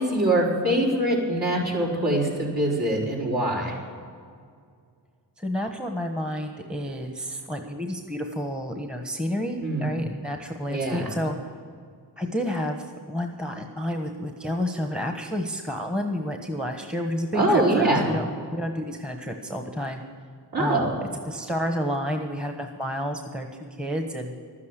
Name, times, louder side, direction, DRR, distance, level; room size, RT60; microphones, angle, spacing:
voice 1, 0.0-3.7 9.6-9.9 10.7-11.1 17.3-18.0 20.5-20.9, right 1 dB, 55° right, -4 dB, 4.4 m, -23 dB
voice 2, 5.4-11.3 12.2-18.2 18.5-20.0 20.6-23.5 23.8-24.4, equal, ahead, 4 dB, 1.2 m, -30 dB
12.5 x 9.6 x 8.1 m, 2.1 s
cardioid pair, 65°, 45 cm